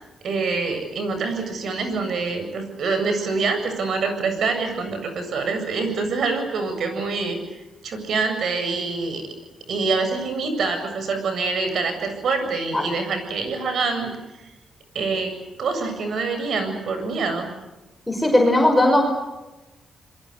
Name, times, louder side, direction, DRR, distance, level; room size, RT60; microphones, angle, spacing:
voice 1, 0.2-7.4 7.8-9.2 9.7-14.1 14.9-15.3 15.6-17.5, right 4 dB, 65° right, 7 dB, 7.8 m, -25 dB
voice 2, 18.1-19.0, left 1 dB, 10° left, 2 dB, 5.9 m, -17 dB
27.5 x 23.0 x 8.2 m, 1.0 s
cardioid pair, 95°, 0 cm